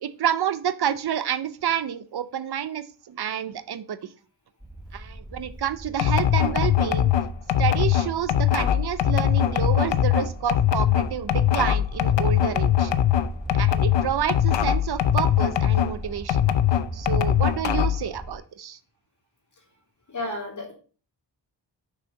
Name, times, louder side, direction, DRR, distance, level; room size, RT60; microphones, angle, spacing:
voice 1, 0.0-4.1 4.9-7.1 7.6-12.9 13.5-16.4 16.9-18.8, right 9 dB, 60° right, 13 dB, 0.6 m, -29 dB
sound 1, 4.6-18.4, right 1 dB, ahead, 0.8 m, -39 dB
sound 2, 6.0-15.9 16.3-18.1, left 10 dB, 80° left, 0.7 m, -21 dB
voice 2, 20.1-20.7, left 1 dB, 45° left, -1 dB, 3.0 m, -32 dB
6.5 x 4.8 x 5.1 m, 0.39 s
wide cardioid pair, 115°, 43 cm